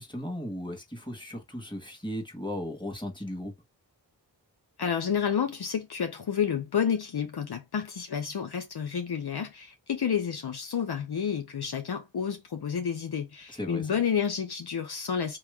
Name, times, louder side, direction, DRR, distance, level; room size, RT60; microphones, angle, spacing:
voice 1, 0.0-3.5 13.6-13.9, left 1 dB, 10° left, 1.7 m, -36 dB
voice 2, 4.8-15.4, left 7 dB, 60° left, 0.8 m, -30 dB
3.0 x 3.0 x 3.6 m
cardioid pair, 40°, 44 cm